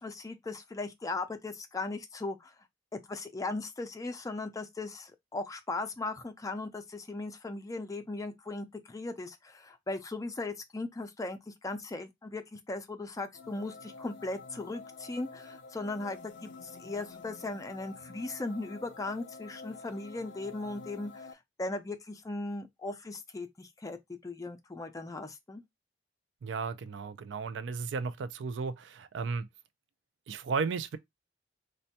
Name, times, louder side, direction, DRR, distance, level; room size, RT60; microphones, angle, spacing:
voice 1, 0.0-2.5 2.9-21.3 21.6-25.6, left 2 dB, 20° left, 0.4 m, -38 dB
sound 1, 13.3-21.3, left 3 dB, 75° left, 0.4 m, -49 dB
voice 2, 26.4-29.5 30.3-31.0, right 5 dB, 70° right, 0.4 m, -34 dB
4.1 x 2.2 x 2.7 m
head